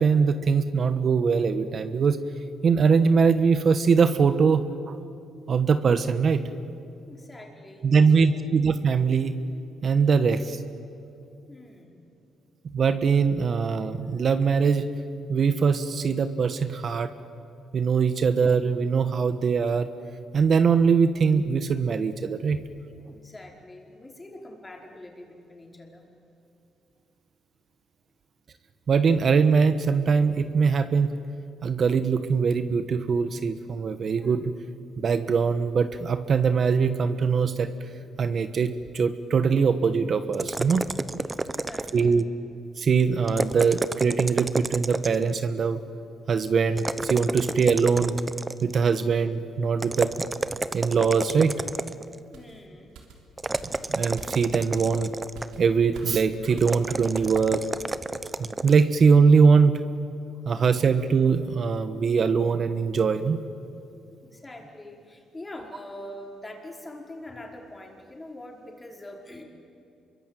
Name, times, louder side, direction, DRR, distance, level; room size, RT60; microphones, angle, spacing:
voice 1, 0.0-2.2 2.6-5.0 5.5-6.4 7.8-9.4 9.8-10.6 12.7-14.9 15.3-17.1 17.7-19.9 20.3-22.6 28.9-31.1 31.6-34.5 35.0-37.7 38.2-40.8 41.9-42.2 42.8-45.8 46.3-48.2 48.6-50.1 50.7-51.5 53.9-55.1 55.6-57.6 58.4-59.8 60.5-63.4, right 5 dB, 50° right, 11 dB, 1.3 m, -22 dB
voice 2, 7.1-8.5 11.5-12.0 23.1-26.1 41.5-42.2 49.8-50.0 52.3-53.0 60.3-60.5 64.2-69.4, left 1 dB, 20° left, 2 dB, 5.0 m, -44 dB
sound 1, 40.3-42.2 43.2-45.3 46.8-48.7 49.8-52.2 53.4-55.6 56.6-58.8, right 2 dB, 20° right, 1.0 m, -31 dB
sound 2, 52.3-57.5 57.8-58.0, right 4 dB, 85° right, 3.6 m, -48 dB
26.0 x 23.0 x 9.3 m, 2.7 s
cardioid pair, 90°, 0 cm